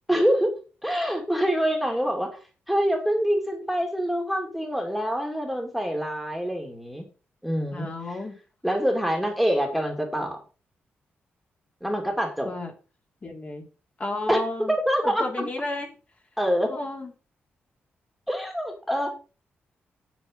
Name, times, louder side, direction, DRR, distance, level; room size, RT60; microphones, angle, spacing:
voice 1, 0.1-0.5 0.8-2.3 2.7-7.1 7.4-8.2 8.6-10.4 11.8-12.5 14.3-14.4 14.7-15.5 16.4-16.7 18.3-19.1, equal, ahead, 1 dB, 2.6 m, -25 dB
voice 2, 7.7-8.3 12.4-12.7 13.2-13.6 14.0-14.7 15.0-15.9 16.7-17.1, left 2 dB, 35° left, 1 dB, 3.2 m, -32 dB
8.3 x 8.1 x 5.4 m, 0.35 s
cardioid pair, 110°, 4 cm